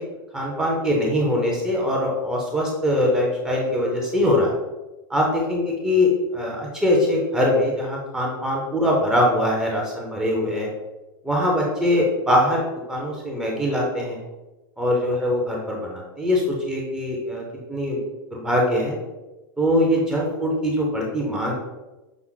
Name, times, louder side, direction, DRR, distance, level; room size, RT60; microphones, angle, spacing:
voice 1, 0.3-4.5 5.1-10.7 11.2-14.2 14.8-18.0 18.3-19.0 19.6-21.5, left 1 dB, 5° right, -2 dB, 0.5 m, -22 dB
5.9 x 2.0 x 3.6 m, 1.1 s
supercardioid pair, 165°, 12 cm